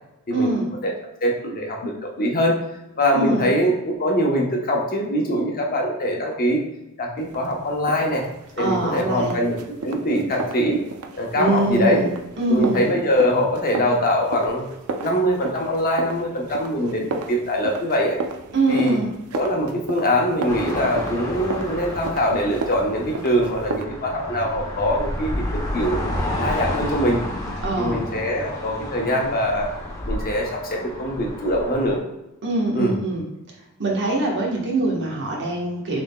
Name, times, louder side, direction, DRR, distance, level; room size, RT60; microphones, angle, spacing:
voice 1, 0.3-0.6 3.1-3.5 8.6-9.4 11.3-12.1 12.4-12.8 18.5-19.1 27.6-28.0 32.4-33.2 33.8-36.0, right 2 dB, 55° right, -2 dB, 1.3 m, -23 dB
voice 2, 1.2-2.6 3.0-6.6 7.0-8.2 8.6-10.8 11.1-12.0 12.5-14.6 15.0-18.2 18.7-19.0 19.3-26.0 26.4-27.2 27.8-29.7 30.1-32.0 32.7-33.0, equal, 40° left, 0 dB, 0.9 m, -23 dB
sound 1, 7.2-23.8, right 3 dB, 85° right, 0.5 m, -34 dB
sound 2, 20.5-32.0, left 1 dB, 15° left, 0.8 m, -31 dB
6.5 x 3.6 x 2.3 m, 0.95 s
head